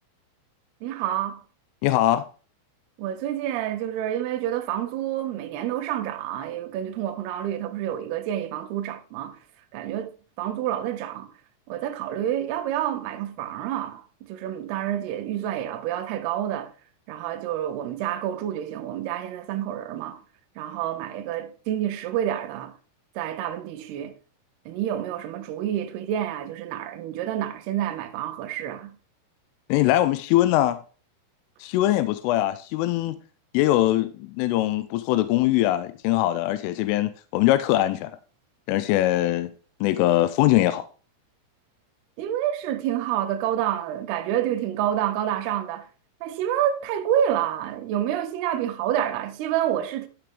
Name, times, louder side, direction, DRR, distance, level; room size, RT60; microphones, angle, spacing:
voice 1, 0.8-1.4 3.0-9.4 9.7-11.3 11.7-16.7 17.1-20.2 20.6-22.7 23.2-24.1 24.7-28.9 42.2-45.9 46.2-50.1, right 11 dB, 90° right, 2.3 m, -28 dB
voice 2, 1.8-2.2 29.7-30.8 31.6-33.2 33.5-38.1 38.7-39.5 39.8-40.9, left 15 dB, 85° left, 3.1 m, -22 dB
12.0 x 5.1 x 3.4 m
omnidirectional pair, 5.8 m